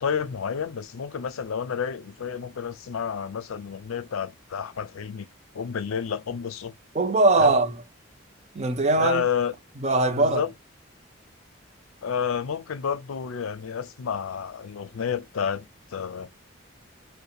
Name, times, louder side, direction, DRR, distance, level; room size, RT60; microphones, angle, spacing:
voice 1, 0.0-5.3 5.5-6.8 7.4-7.6 9.0-9.5 10.2-10.5 12.0-16.3, left 7 dB, 85° left, 0.5 m, -30 dB
voice 2, 6.9-7.7 8.5-9.3 9.8-10.4, right 2 dB, 30° right, 0.5 m, -21 dB
2.7 x 2.1 x 2.3 m
head